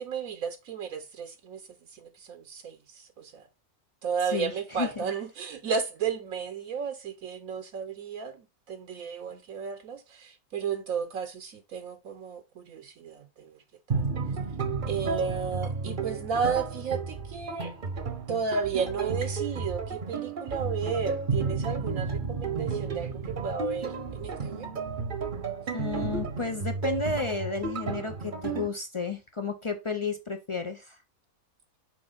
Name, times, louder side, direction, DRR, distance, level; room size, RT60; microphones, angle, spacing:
voice 1, 0.0-1.6 1.9-3.5 4.0-13.6 13.9-14.0 14.9-17.7 18.3-24.7, right 6 dB, 75° right, 1.2 m, -33 dB
sound 1, 13.9-28.7, right 4 dB, 40° right, 0.9 m, -32 dB
voice 2, 25.7-31.0, left 4 dB, 45° left, 0.4 m, -32 dB
6.3 x 4.4 x 4.0 m
omnidirectional pair, 1.5 m